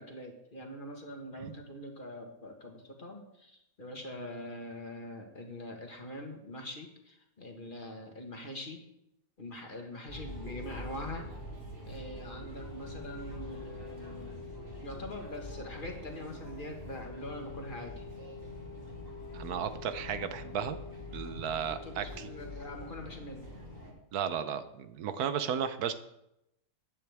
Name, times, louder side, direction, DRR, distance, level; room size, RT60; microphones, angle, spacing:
voice 1, 0.0-8.8 9.4-11.3 11.8-14.5 14.8-18.0 21.7-23.5, left 1 dB, 35° left, 2 dB, 1.6 m, -43 dB
sound 1, 10.1-23.9, left 2 dB, 40° right, 2.9 m, -44 dB
voice 2, 19.3-20.8 21.1-22.3 24.1-25.9, right 8 dB, 85° right, 11 dB, 1.3 m, -34 dB
14.5 x 9.6 x 3.5 m, 0.82 s
omnidirectional pair, 1.6 m